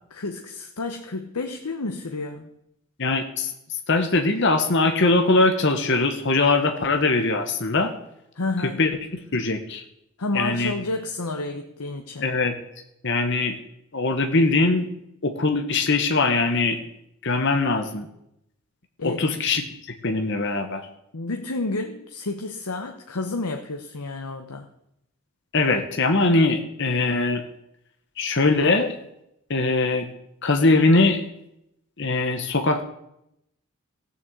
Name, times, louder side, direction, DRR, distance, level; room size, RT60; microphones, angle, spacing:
voice 1, 0.1-2.5 8.3-8.8 10.2-12.3 19.0-19.4 21.1-24.7, left 2 dB, 90° left, 4 dB, 1.0 m, -30 dB
voice 2, 3.0-3.5 3.9-7.9 8.8-8.9 9.3-9.8 10.3-10.7 12.2-12.5 13.0-13.6 13.9-14.9 15.2-16.8 17.2-18.1 19.0-19.6 20.0-20.9 25.5-27.4 28.2-28.9 29.5-30.1 30.4-31.2 32.0-32.8, left 3 dB, 55° left, 5 dB, 1.2 m, -21 dB
15.0 x 7.2 x 7.9 m, 0.81 s
head